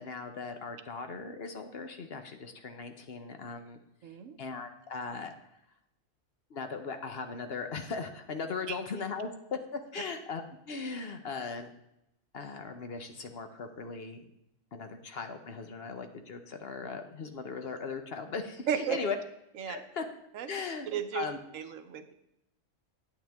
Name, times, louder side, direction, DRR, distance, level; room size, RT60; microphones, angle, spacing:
voice 1, 0.0-3.8 4.4-5.3 6.5-9.3 9.9-11.7 12.3-14.2 14.7-19.2 19.7-20.0 20.5-20.9 21.1-21.4, left 4 dB, 55° left, 7 dB, 1.0 m, -38 dB
voice 2, 4.0-4.4 8.7-8.8 18.7-19.0 19.6-19.8 20.3-20.5 20.9-21.2 21.5-22.1, right 8 dB, 80° right, 9 dB, 1.2 m, -33 dB
9.4 x 9.0 x 3.5 m, 0.83 s
omnidirectional pair, 1.3 m